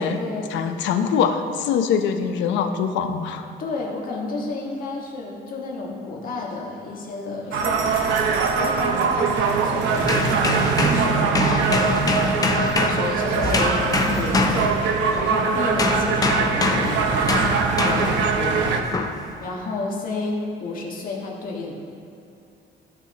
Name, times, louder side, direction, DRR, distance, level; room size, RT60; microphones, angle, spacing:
voice 1, 0.0-0.8 3.6-12.6 12.9-14.7 15.1-18.9 19.4-21.7, left 3 dB, 50° left, -2 dB, 1.6 m, -31 dB
voice 2, 0.5-3.5, left 7 dB, 80° left, 7 dB, 0.7 m, -23 dB
sound 1, 7.5-18.8, right 5 dB, 80° right, 0.8 m, -22 dB
sound 2, 10.0-15.3 15.8-18.3 18.9-19.2, left 3 dB, 20° left, 0.5 m, -24 dB
14.5 x 6.3 x 2.9 m, 2.6 s
cardioid pair, 145°, 19 cm